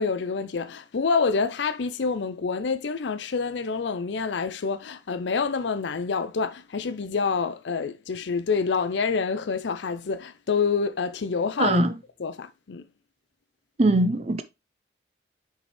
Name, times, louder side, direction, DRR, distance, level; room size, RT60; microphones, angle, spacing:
voice 1, 0.0-11.8 12.2-12.8, left 5 dB, 80° left, 0.5 m, -27 dB
voice 2, 13.8-14.4, right 2 dB, 35° right, 0.5 m, -21 dB
6.3 x 5.3 x 3.2 m
head